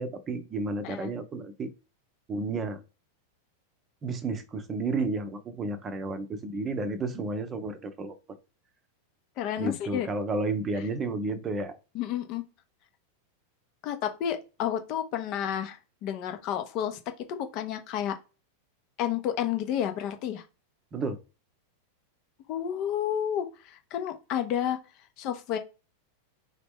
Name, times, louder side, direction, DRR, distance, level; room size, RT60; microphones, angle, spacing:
voice 1, 0.0-1.7 2.3-2.8 4.0-8.2 9.6-11.8 20.9-21.2, right 3 dB, 25° right, 0.7 m, -32 dB
voice 2, 9.4-10.1 11.9-12.4 13.8-17.0 17.3-18.2 19.0-20.4 22.5-24.8 25.2-25.6, left 10 dB, 40° left, 0.7 m, -31 dB
3.9 x 3.0 x 3.5 m
figure-of-eight pair, 90°, 0 cm